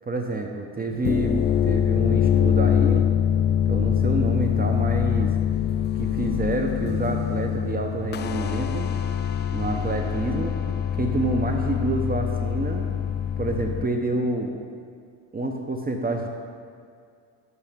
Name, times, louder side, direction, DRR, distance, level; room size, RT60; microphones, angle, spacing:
voice 1, 0.1-3.1 3.7-5.4 6.0-8.9 9.5-10.6 11.0-12.9 13.4-14.6 15.3-16.3, right 2 dB, 20° right, 3 dB, 0.6 m, -28 dB
sound 1, 0.9-13.8, left 9 dB, 25° left, 0.3 m, -24 dB
9.5 x 7.7 x 3.5 m, 2.2 s
cardioid pair, 90°, 41 cm